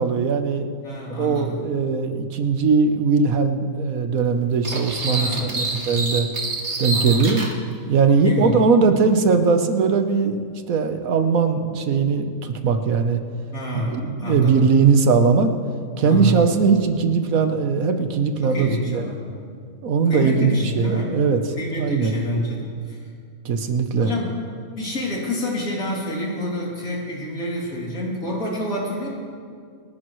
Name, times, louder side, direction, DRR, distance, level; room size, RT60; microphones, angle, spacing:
voice 1, 0.0-0.7 1.2-6.3 6.8-7.5 7.9-10.4 10.7-13.2 13.9-15.5 16.0-19.1 19.8-21.4 21.8-22.1 23.4-24.1, right 5 dB, 70° right, 7 dB, 1.4 m, -20 dB
voice 2, 0.8-1.6 5.1-5.5 6.9-7.4 8.0-8.6 13.5-14.7 16.0-16.5 18.4-19.2 20.1-21.2 21.6-23.0 24.0-24.3 24.8-29.1, equal, 70° left, -4 dB, 3.5 m, -27 dB
sound 1, 4.6-7.5, right 2 dB, 50° right, 1.8 m, -27 dB
28.0 x 11.0 x 3.1 m, 2.2 s
omnidirectional pair, 1.5 m